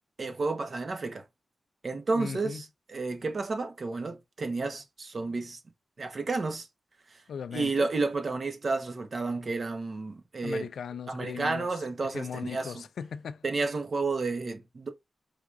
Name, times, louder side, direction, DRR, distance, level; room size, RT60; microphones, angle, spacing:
voice 1, 0.2-1.2 1.8-5.6 6.0-6.7 7.5-10.7 11.1-12.7 13.4-14.9, right 3 dB, 55° right, 0.9 m, -31 dB
voice 2, 2.1-2.6 7.3-7.9 10.4-13.4, left 7 dB, 85° left, 0.4 m, -38 dB
4.9 x 3.4 x 2.4 m
cardioid pair, 55°, 0 cm